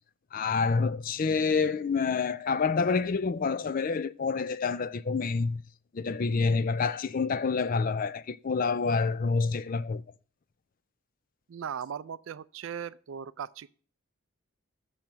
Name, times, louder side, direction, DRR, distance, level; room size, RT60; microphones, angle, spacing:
voice 1, 0.3-5.6 5.9-10.0, left 4 dB, 40° left, 0.4 m, -27 dB
voice 2, 11.5-13.7, right 8 dB, 65° right, 0.4 m, -38 dB
7.1 x 6.0 x 6.5 m
head